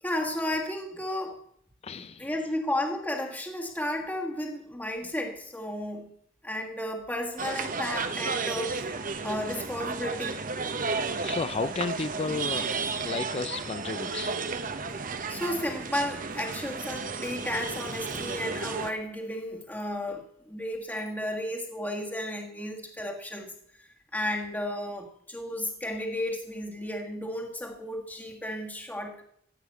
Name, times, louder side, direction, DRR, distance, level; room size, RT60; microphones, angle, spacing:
voice 1, 0.0-1.4 1.9-6.1 6.4-8.9 9.2-10.5 14.9-15.0 15.3-23.5 23.8-29.2, left 1 dB, 10° left, 1 dB, 1.6 m, -33 dB
voice 2, 1.8-2.3 10.9-12.7 13.0-14.3, left 4 dB, 35° left, 14 dB, 0.4 m, -33 dB
sound 1, 7.4-18.9, right 4 dB, 45° right, 1.0 m, -33 dB
15.0 x 5.7 x 8.3 m, 0.68 s
head